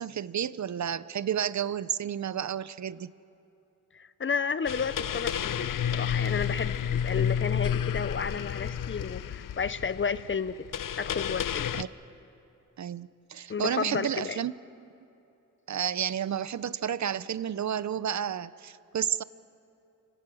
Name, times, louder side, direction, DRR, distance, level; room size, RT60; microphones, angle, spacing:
voice 1, 0.0-3.1 11.8-11.9 12.8-14.5 15.7-19.2, right 9 dB, 60° right, 17 dB, 0.6 m, -31 dB
voice 2, 3.9-10.7 11.0-11.7 13.5-14.4, left 6 dB, 40° left, 15 dB, 0.6 m, -32 dB
sound 1, 4.7-11.8, left 8 dB, 80° left, 0.6 m, -31 dB
29.5 x 17.0 x 6.2 m, 2.9 s
wide cardioid pair, 90°, 32 cm